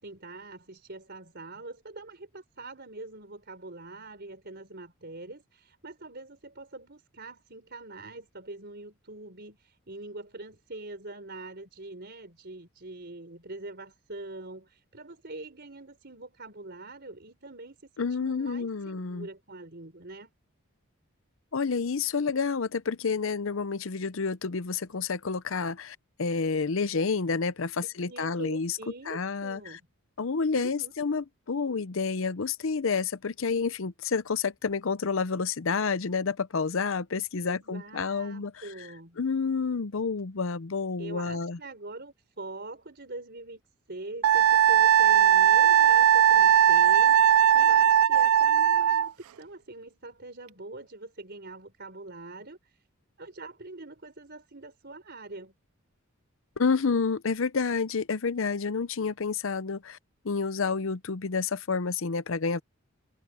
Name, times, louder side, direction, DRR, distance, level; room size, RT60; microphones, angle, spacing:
voice 1, 0.0-20.3 27.8-29.9 30.5-30.9 37.4-39.2 41.0-43.6 43.9-52.8 53.2-55.5, right 2 dB, 50° right, 4.5 m, -44 dB
voice 2, 18.0-19.3 21.5-28.8 29.1-29.8 30.2-38.7 39.2-41.6 56.6-60.0 60.2-62.6, left 5 dB, 65° left, 0.7 m, -29 dB
Wind instrument woodwind instrument, 44.2-49.1, right 10 dB, 80° right, 0.3 m, -19 dB
head